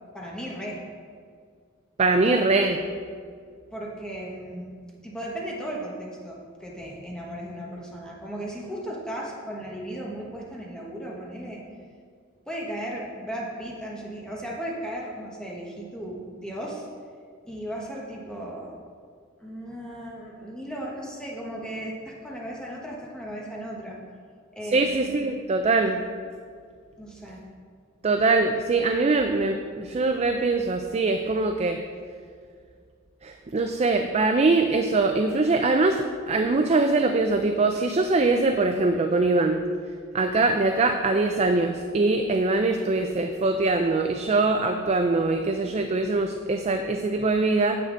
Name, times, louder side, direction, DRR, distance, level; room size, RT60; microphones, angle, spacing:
voice 1, 0.1-0.8 3.7-4.8 5.0-11.6 12.5-16.9 17.5-18.7 19.4-24.0 24.5-24.9 27.0-27.4, right 1 dB, 5° left, -3 dB, 1.1 m, -36 dB
voice 2, 2.0-2.8 24.7-26.0 28.0-31.8 33.2-39.6 40.1-47.7, right 3 dB, 30° right, 5 dB, 0.4 m, -23 dB
9.7 x 7.9 x 3.8 m, 2.1 s
head